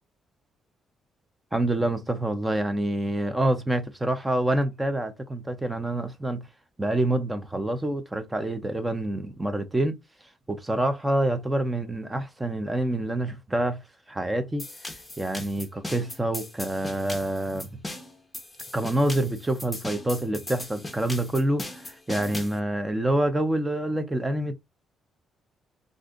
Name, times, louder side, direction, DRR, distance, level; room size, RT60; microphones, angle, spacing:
voice 1, 1.5-6.4 6.8-10.0 10.5-13.8 14.1-14.7 15.2-17.7 18.7-24.5, right 1 dB, 15° right, 0.7 m, -27 dB
sound 1, 14.6-22.6, left 1 dB, 15° left, 0.9 m, -38 dB
2.6 x 2.3 x 3.8 m
cardioid pair, 90°, 0 cm